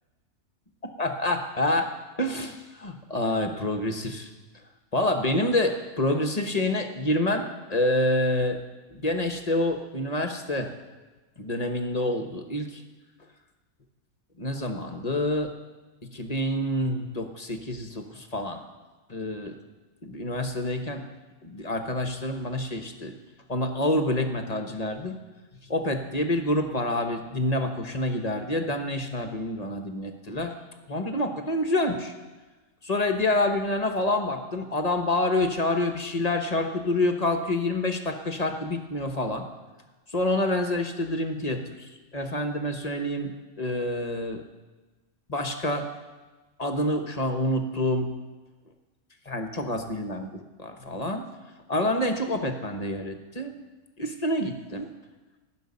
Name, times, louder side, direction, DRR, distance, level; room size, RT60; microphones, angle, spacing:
voice 1, 1.0-1.9 2.2-4.3 4.9-8.6 8.9-10.7 11.4-12.8 14.4-15.5 16.0-18.6 19.1-19.5 20.0-21.0 21.4-23.1 23.5-25.2 25.6-30.5 30.9-32.1 32.8-39.5 40.1-44.4 45.3-45.9 46.6-48.1 49.2-51.2 51.7-53.5 54.0-54.9, left 1 dB, 30° left, 6 dB, 1.2 m, -27 dB
16.0 x 6.8 x 9.8 m, 1.2 s
omnidirectional pair, 1.6 m